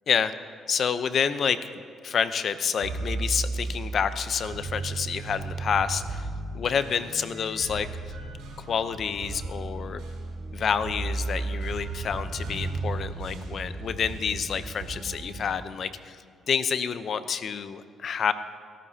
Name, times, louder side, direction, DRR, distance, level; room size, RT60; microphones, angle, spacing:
voice 1, 0.7-1.6 2.0-6.3 6.5-7.9 8.7-10.0 10.5-16.2 16.5-18.3, left 7 dB, 55° left, 12 dB, 0.7 m, -28 dB
sound 1, 2.8-15.6, right 3 dB, 90° right, 4.3 m, -34 dB
24.5 x 12.5 x 2.9 m, 2.2 s
cardioid pair, 80°, 0 cm